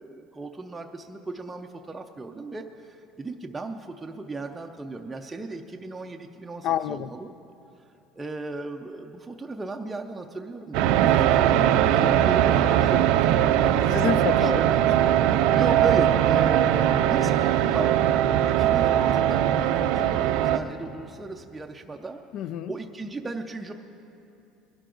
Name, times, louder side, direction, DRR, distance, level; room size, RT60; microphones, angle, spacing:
voice 1, 0.0-7.3 8.1-14.0 14.4-14.8 15.5-18.0 18.6-22.2 22.7-23.7, right 2 dB, 10° right, 2 dB, 0.5 m, -36 dB
voice 2, 6.6-7.1 11.1-11.3 12.0-12.3 13.9-14.6 22.3-22.7, left 10 dB, 50° left, 16 dB, 0.4 m, -29 dB
sound 1, 10.7-20.6, right 11 dB, 70° right, 0.5 m, -20 dB
21.0 x 11.5 x 3.8 m, 2.7 s
cardioid pair, 155°, 0 cm